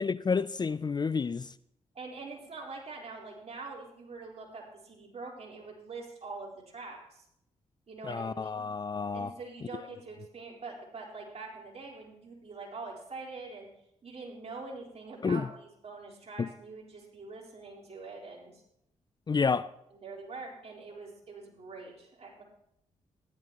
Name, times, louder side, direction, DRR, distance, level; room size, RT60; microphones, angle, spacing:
voice 1, 0.0-1.5 8.1-9.3 15.2-15.5 16.4-16.5 19.3-19.7, left 5 dB, 35° left, 0.4 m, -30 dB
voice 2, 1.9-7.3 7.9-8.6 9.1-13.7 14.0-18.6 19.9-22.4, right 3 dB, 50° right, 4.3 m, -44 dB
14.0 x 11.5 x 3.0 m
supercardioid pair, 50°, 13 cm